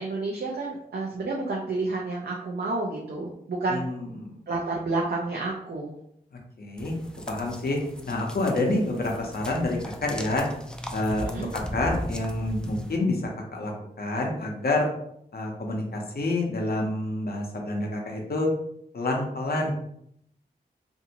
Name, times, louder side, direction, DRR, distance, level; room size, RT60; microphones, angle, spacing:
voice 1, 0.0-3.9 4.5-5.9 11.2-11.5, right 3 dB, 75° right, -2 dB, 0.5 m, -30 dB
voice 2, 3.7-4.4 6.3-6.9 7.3-7.8 8.0-10.4 10.9-13.2 13.5-13.7 14.0-14.9 15.3-18.5 18.9-19.7, left 2 dB, 70° left, 0 dB, 0.7 m, -28 dB
sound 1, 6.8-13.0, equal, 5° left, 0.4 m, -37 dB
2.6 x 2.5 x 2.8 m, 0.72 s
cardioid pair, 50°, 17 cm